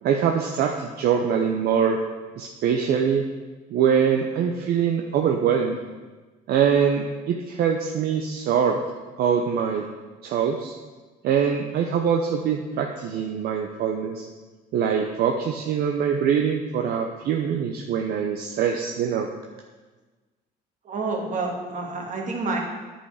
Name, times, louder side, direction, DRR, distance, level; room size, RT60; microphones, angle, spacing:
voice 1, 0.0-2.0 2.4-3.2 3.7-5.8 6.5-8.8 9.2-9.8 10.2-10.7 11.2-14.3 14.7-19.3, right 7 dB, 70° right, 2 dB, 0.7 m, -23 dB
voice 2, 20.9-22.6, right 3 dB, 50° right, 0 dB, 1.9 m, -28 dB
9.9 x 5.7 x 4.8 m, 1.3 s
cardioid pair, 110°, 17 cm